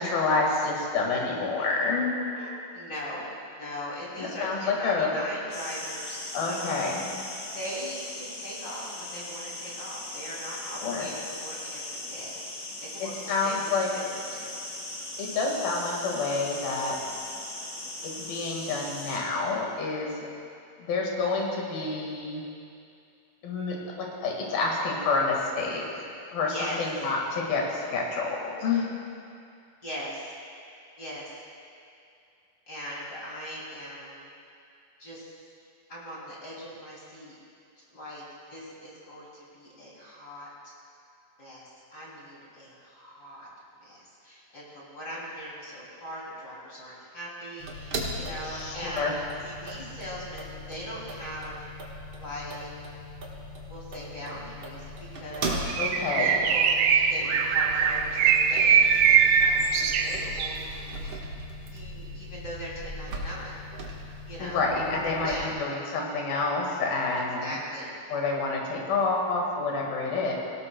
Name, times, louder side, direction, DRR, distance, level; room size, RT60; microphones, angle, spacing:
voice 1, 0.0-2.2 4.2-5.2 6.3-7.1 10.8-11.1 13.0-13.9 15.2-17.0 18.0-20.1 20.8-22.4 23.4-26.1 26.3-28.9 48.5-49.1 55.8-56.3 64.4-67.6 68.1-70.3, left 3 dB, 80° left, -1 dB, 3.6 m, -28 dB
voice 2, 2.3-6.8 7.5-14.6 26.5-26.8 29.8-30.3 31.0-31.3 32.7-34.3 35.0-35.4 35.9-37.3 37.9-38.2 38.5-40.7 41.4-43.5 43.8-51.7 52.2-52.7 53.7-55.7 56.2-56.7 57.1-60.8 61.7-63.5 64.3-64.6 65.2-65.5 67.4-68.0, equal, 30° left, -6 dB, 3.2 m, -40 dB
sound 1, 5.5-19.2, left 2 dB, 45° left, 2.7 m, -39 dB
sound 2, 47.6-65.6, right 1 dB, 55° right, 1.6 m, -38 dB
Bird, 55.7-60.6, right 7 dB, 75° right, 2.2 m, -22 dB
19.0 x 17.5 x 2.3 m, 2.5 s
omnidirectional pair, 4.2 m